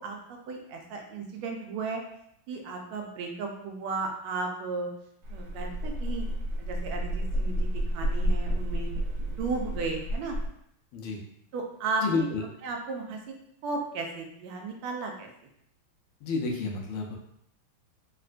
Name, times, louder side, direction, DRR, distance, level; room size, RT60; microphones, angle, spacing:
voice 1, 0.0-2.0 2.5-4.9 5.3-6.3 6.6-8.9 9.4-10.4 11.5-12.3 12.6-13.2 13.6-15.3, right 3 dB, 85° right, 2 dB, 1.5 m, -34 dB
sound 1, 5.2-10.5, equal, 70° right, 1.1 m, -30 dB
voice 2, 12.0-12.4 16.2-17.2, left 4 dB, 85° left, 0 dB, 1.5 m, -30 dB
4.0 x 2.2 x 2.4 m, 0.74 s
omnidirectional pair, 2.3 m